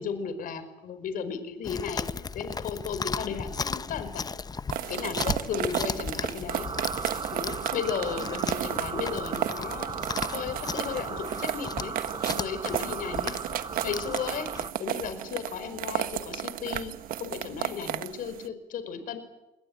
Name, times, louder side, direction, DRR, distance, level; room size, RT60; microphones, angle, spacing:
voice 1, 0.0-4.2 4.9-6.7 7.3-9.9 10.3-11.9 12.3-13.3 13.8-19.2, left 7 dB, 65° left, 11 dB, 5.1 m, -35 dB
Chewing mastication, 1.6-14.7, left 5 dB, 25° left, 0.9 m, -36 dB
sound 1, 4.7-18.5, right 12 dB, 70° right, 1.5 m, -34 dB
sound 2, 6.5-14.7, right 5 dB, 30° right, 1.5 m, -37 dB
28.0 x 22.5 x 8.8 m, 0.95 s
supercardioid pair, 85°, 15 cm